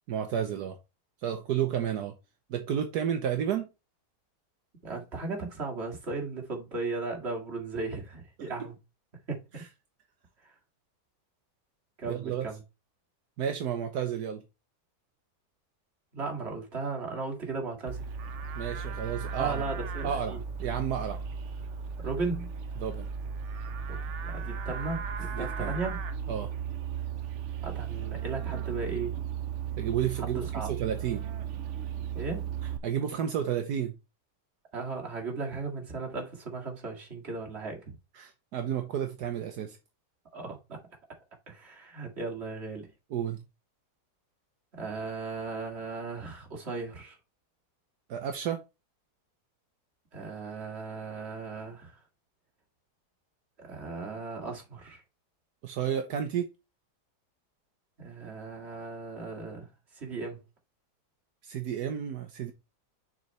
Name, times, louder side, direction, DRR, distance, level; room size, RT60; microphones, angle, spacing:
voice 1, 0.1-0.8 1.2-2.1 2.5-3.7 12.1-12.5 13.4-14.4 18.5-19.6 20.0-21.3 22.8-23.1 25.3-25.7 26.3-26.5 29.8-30.4 30.7-31.3 32.8-33.9 38.2-39.8 43.1-43.4 48.1-48.6 55.6-56.5 61.4-62.5, right 9 dB, 75° right, 1.4 m, -31 dB
voice 2, 4.8-8.7 9.3-9.6 10.4-10.5 12.0-12.6 16.1-18.1 19.4-20.4 22.0-22.5 23.9-24.0 24.2-26.0 27.6-29.2 30.2-30.7 32.1-32.5 34.7-37.9 40.3-40.8 41.5-42.9 44.7-47.2 50.1-52.0 53.6-55.0 58.0-60.4, right 3 dB, 40° right, 2.3 m, -36 dB
Livestock farm animals working animals, 17.9-32.8, right 7 dB, 55° right, 0.9 m, -36 dB
6.6 x 4.4 x 4.2 m
omnidirectional pair, 1.8 m